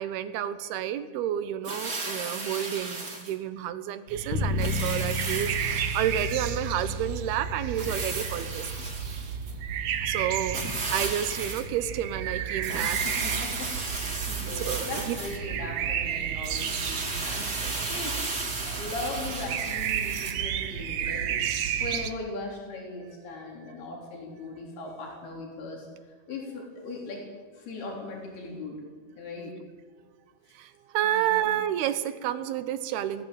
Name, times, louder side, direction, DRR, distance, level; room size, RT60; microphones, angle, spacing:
voice 1, 0.0-8.9 10.0-13.0 14.5-15.2 17.6-17.7 30.5-33.3, right 11 dB, 85° right, 12 dB, 3.1 m, -30 dB
sound 1, 1.6-3.3 4.6-6.6 7.7-9.5 10.5-11.7 12.6-15.4 16.4-20.3, right 3 dB, 25° right, 3.1 m, -34 dB
sound 2, 4.1-22.1, right 9 dB, 65° right, 1.8 m, -33 dB
Bass guitar, 4.3-10.6, left 1 dB, 60° left, 2.5 m, -34 dB
voice 2, 12.8-17.5 17.9-18.2 18.6-21.3 21.8-25.9 26.3-27.2 27.6-28.8 29.2-29.5 31.0-31.5, left 2 dB, 80° left, 0 dB, 5.8 m, -39 dB
21.5 x 15.0 x 8.9 m, 1.6 s
omnidirectional pair, 4.4 m